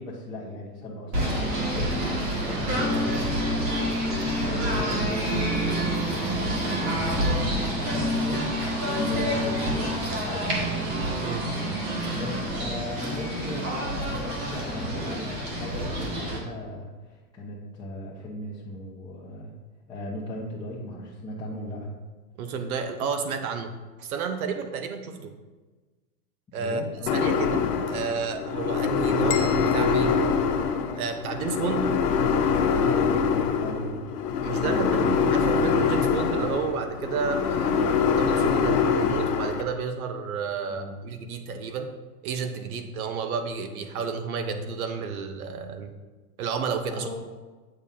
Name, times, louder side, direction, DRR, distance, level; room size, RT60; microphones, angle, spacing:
voice 1, 0.0-10.6 11.5-19.6 19.9-21.9 26.5-27.2 32.6-34.0 34.6-35.1 40.6-41.0 46.9-47.2, left 1 dB, 10° left, -10 dB, 1.0 m, -37 dB
Singing / Bird, 1.1-16.4, equal, 40° right, 2.0 m, -27 dB
voice 2, 11.2-11.5 22.4-23.7 24.0-25.3 26.5-26.8 27.1-30.3 30.9-31.9 34.4-41.9 42.2-45.9 46.4-47.1, right 5 dB, 65° right, 7 dB, 1.1 m, -31 dB
sound 1, 27.1-39.6, left 6 dB, 90° left, 1.0 m, -24 dB
sound 2, 29.3-31.3, left 8 dB, 45° left, 0.8 m, -38 dB
8.9 x 7.0 x 2.8 m, 1.3 s
supercardioid pair, 155°, 47 cm